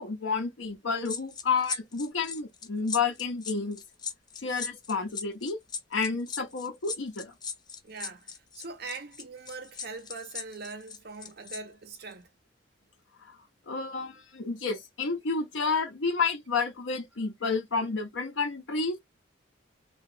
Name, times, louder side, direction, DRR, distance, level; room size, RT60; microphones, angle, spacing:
voice 1, 0.0-3.8 4.4-5.6 5.9-7.3 13.7-19.0, left 4 dB, 85° left, 0.8 m, -30 dB
sound 1, 1.0-11.6 11.9-12.1, left 5 dB, 20° left, 0.4 m, -38 dB
voice 2, 7.8-12.3, right 4 dB, 55° right, 0.7 m, -42 dB
2.8 x 2.4 x 3.8 m
head